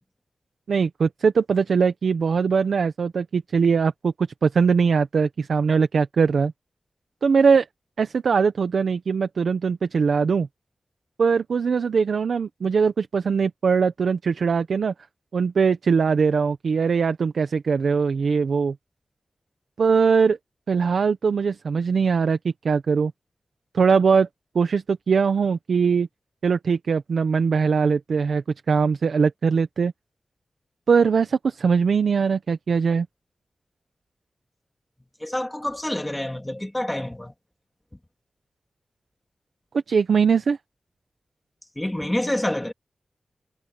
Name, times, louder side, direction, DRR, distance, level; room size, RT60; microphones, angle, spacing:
voice 1, 0.7-4.1 4.4-6.5 7.2-7.7 8.0-10.5 11.2-14.9 15.3-18.7 19.8-20.4 20.7-23.1 23.7-24.3 24.5-26.1 26.4-29.9 30.9-33.1 39.9-40.6, right 5 dB, 85° right, 0.9 m, -21 dB
voice 2, 35.2-37.3 41.8-42.7, left 1 dB, 10° left, 3.0 m, -27 dB
wide cardioid pair, 140°, 0 cm